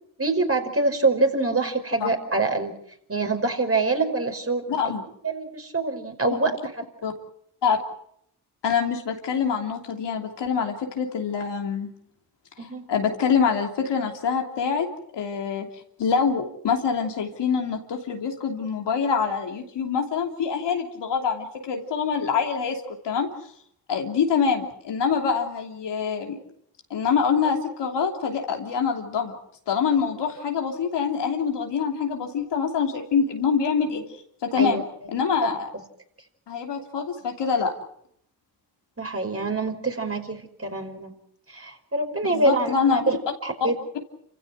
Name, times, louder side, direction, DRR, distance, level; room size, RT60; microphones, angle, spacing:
voice 1, 0.2-2.7 3.1-4.6 5.2-6.6 12.6-12.9 33.9-34.0 34.6-34.8 35.4-35.5 39.0-41.1 41.5-43.2 43.4-43.8, right 3 dB, 35° right, 4 dB, 5.3 m, -25 dB
voice 2, 4.7-5.0 7.0-7.1 7.6-7.8 8.6-11.9 12.9-14.9 15.1-15.7 16.0-23.3 23.9-26.4 26.9-29.3 29.7-34.0 34.4-34.8 35.1-35.7 36.5-37.7 42.3-43.1, left 6 dB, 80° left, 3 dB, 3.0 m, -25 dB
28.0 x 16.0 x 7.9 m, 0.71 s
supercardioid pair, 45°, 41 cm